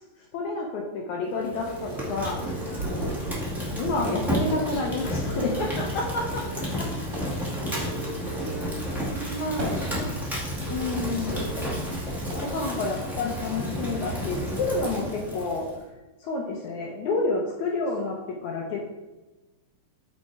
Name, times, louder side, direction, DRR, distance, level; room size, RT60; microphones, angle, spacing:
voice 1, 0.3-2.4 3.7-6.4 6.8-6.9 9.4-9.9 10.7-11.5 12.4-15.7 16.2-18.8, left 3 dB, 75° left, 0 dB, 1.8 m, -29 dB
Fire, 1.3-15.7, equal, 5° right, 0.3 m, -31 dB
sound 1, 1.6-12.2, right 1 dB, 35° left, 2.6 m, -41 dB
sound 2, 1.9-5.6 6.3-6.4 7.0-7.5 8.3-8.4 9.4-10.5 11.0-13.5, right 1 dB, 40° right, 2.9 m, -39 dB
voice 2, 2.2-3.1 5.5-5.7 7.1-7.3 7.9-8.8 9.2-9.6 10.0-10.5 11.5-12.6 14.9-15.3, right 4 dB, 60° right, -6 dB, 1.3 m, -44 dB
5.7 x 5.6 x 4.6 m, 1.1 s
omnidirectional pair, 4.1 m